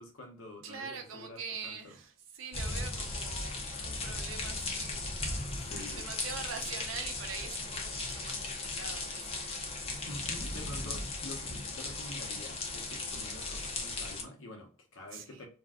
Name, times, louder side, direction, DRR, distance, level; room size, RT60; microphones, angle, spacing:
voice 1, 0.0-1.9 5.5-6.1 10.1-15.5, left 1 dB, 85° left, 0.8 m, -47 dB
voice 2, 0.6-9.8 15.1-15.5, right 5 dB, 90° right, 0.6 m, -44 dB
sound 1, 2.5-14.2, left 3 dB, 30° left, 0.5 m, -37 dB
2.5 x 2.2 x 3.4 m
head